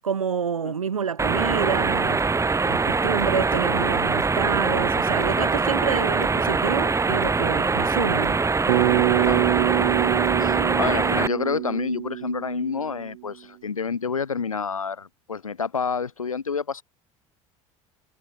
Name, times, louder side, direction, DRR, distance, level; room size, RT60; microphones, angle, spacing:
voice 1, 0.0-2.2 2.6-8.4, right 7 dB, 85° right, 1.9 m, -28 dB
sound 1, 1.2-11.3, right 4 dB, 15° right, 1.8 m, -23 dB
Bass guitar, 8.7-13.0, right 22 dB, 65° right, 6.8 m, -25 dB
voice 2, 10.4-16.8, left 5 dB, 90° left, 2.7 m, -29 dB
figure-of-eight pair, 70°, 17 cm